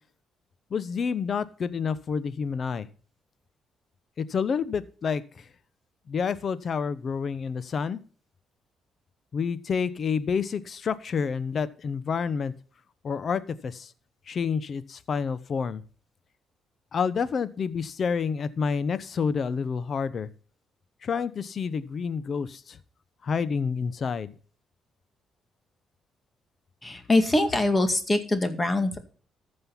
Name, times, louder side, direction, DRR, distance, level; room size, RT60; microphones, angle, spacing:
voice 1, 0.7-2.9 4.2-5.5 6.1-8.0 9.3-12.5 13.0-13.9 14.3-15.8 16.9-20.3 21.0-22.8 23.2-24.3, left 6 dB, 50° left, 16 dB, 0.9 m, -29 dB
voice 2, 26.8-29.0, left 2 dB, 20° left, 8 dB, 2.0 m, -23 dB
14.0 x 5.5 x 5.7 m, 0.42 s
cardioid pair, 90°, 0 cm